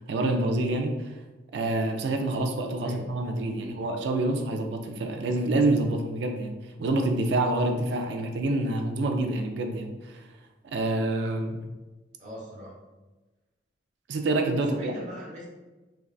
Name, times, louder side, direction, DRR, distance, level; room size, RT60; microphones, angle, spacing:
voice 1, 0.1-1.1 1.5-10.1 10.6-11.7 14.1-14.9, right 2 dB, 65° right, 4 dB, 0.3 m, -27 dB
voice 2, 3.6-3.9 12.2-12.7 14.5-15.5, equal, 45° right, -4 dB, 0.8 m, -40 dB
3.4 x 2.4 x 2.3 m, 1.2 s
head